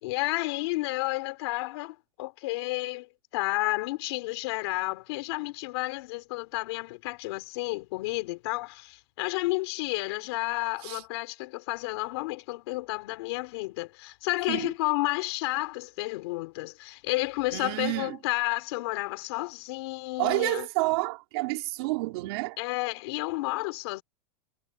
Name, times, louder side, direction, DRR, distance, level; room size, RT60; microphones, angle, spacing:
voice 1, 0.0-20.7 22.6-24.0, left 22 dB, 50° left, 4.0 m, -31 dB
voice 2, 17.5-18.2 20.2-22.6, right 23 dB, 50° right, 4.1 m, -29 dB
supercardioid pair, 170°, 17 cm